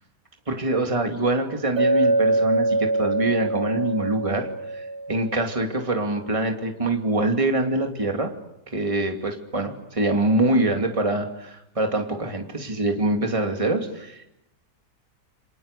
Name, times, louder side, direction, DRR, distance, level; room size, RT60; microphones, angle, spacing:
voice 1, 0.5-8.3 8.7-14.3, right 2 dB, 20° right, 3 dB, 2.6 m, -24 dB
Chink clink, 1.8-5.8, right 2 dB, 70° right, 3.6 m, -24 dB
28.5 x 26.5 x 6.8 m, 0.84 s
omnidirectional pair, 1.8 m